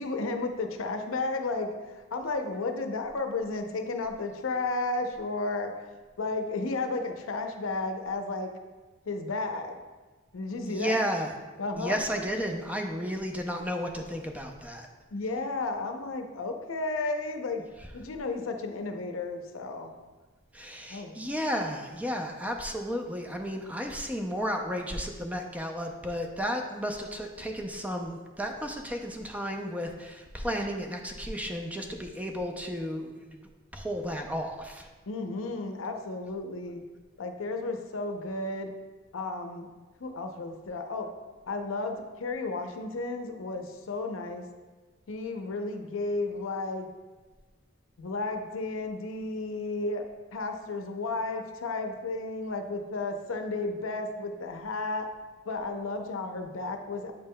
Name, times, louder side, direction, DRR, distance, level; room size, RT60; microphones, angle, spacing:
voice 1, 0.0-1.7 2.1-5.7 6.2-8.5 9.1-9.8 10.3-11.0 11.6-12.0 15.1-17.6 17.9-19.9 20.9-21.1 35.1-36.8 37.2-38.7 39.1-39.7 40.0-41.1 41.5-44.4 45.1-46.9 48.0-50.0 50.3-55.1 55.5-57.1, left 3 dB, 85° left, 5 dB, 0.6 m, -33 dB
voice 2, 10.7-11.3 11.8-14.9 20.5-33.4 33.7-34.9, equal, 5° right, 3 dB, 0.4 m, -33 dB
7.9 x 5.3 x 2.2 m, 1.3 s
head